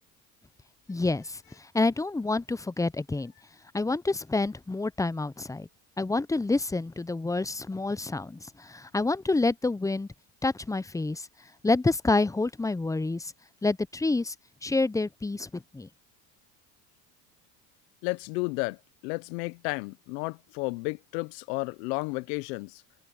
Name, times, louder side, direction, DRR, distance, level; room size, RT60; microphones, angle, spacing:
voice 1, 0.9-1.4 1.7-3.3 3.7-5.7 6.0-10.1 10.4-11.3 11.6-13.3 13.6-14.3 14.6-15.9, left 3 dB, 5° left, 0.6 m, -28 dB
voice 2, 18.0-22.8, left 26 dB, 80° left, 0.8 m, -32 dB
open air
supercardioid pair, 85°, 49 cm